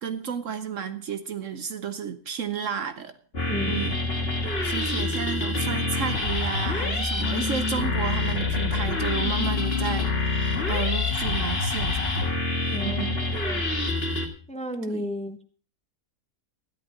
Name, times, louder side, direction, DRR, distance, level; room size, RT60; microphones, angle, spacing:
voice 1, 0.0-3.1 3.6-4.0 4.6-12.4 12.8-13.2 14.9-15.1, right 7 dB, 60° right, 1.1 m, -32 dB
sound 1, 3.3-14.3, left 3 dB, 40° left, 2.1 m, -26 dB
voice 2, 12.7-13.0 13.4-13.6 14.5-15.4, left 1 dB, 5° left, 1.0 m, -32 dB
13.5 x 11.0 x 4.9 m
omnidirectional pair, 1.6 m